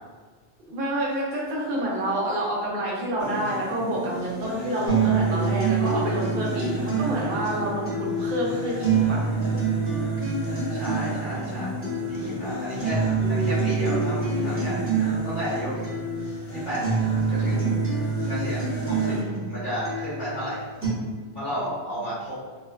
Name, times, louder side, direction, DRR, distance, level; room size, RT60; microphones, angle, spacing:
voice 1, 0.7-9.2 11.3-12.4 14.4-14.8 17.4-17.8 19.1-19.5 21.5-21.6 21.9-22.1, right 1 dB, 55° right, -4 dB, 0.8 m, -29 dB
sound 1, 3.2-19.2, equal, 45° left, 0.3 m, -33 dB
sound 2, 4.9-20.9, right 5 dB, 15° right, 0.8 m, -27 dB
voice 2, 10.7-11.8 12.1-13.0 13.3-14.8 15.2-15.8 16.5-16.8 17.3-17.7 18.3-19.1 19.5-20.6 21.3-22.3, equal, 25° left, -13 dB, 0.8 m, -32 dB
2.5 x 2.2 x 2.2 m, 1.5 s
omnidirectional pair, 1.2 m